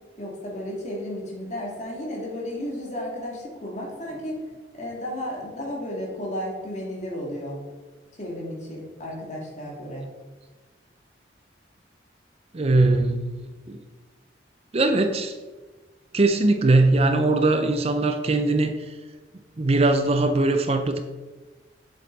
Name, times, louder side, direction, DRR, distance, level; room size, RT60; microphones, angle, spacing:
voice 1, 0.2-4.4 4.7-7.6 8.2-10.1, left 1 dB, 40° left, -2 dB, 2.5 m, -33 dB
voice 2, 12.5-13.8 14.7-15.3 16.1-18.7 19.6-21.0, right 2 dB, 35° right, 8 dB, 0.5 m, -21 dB
8.1 x 7.6 x 4.0 m, 1.2 s
head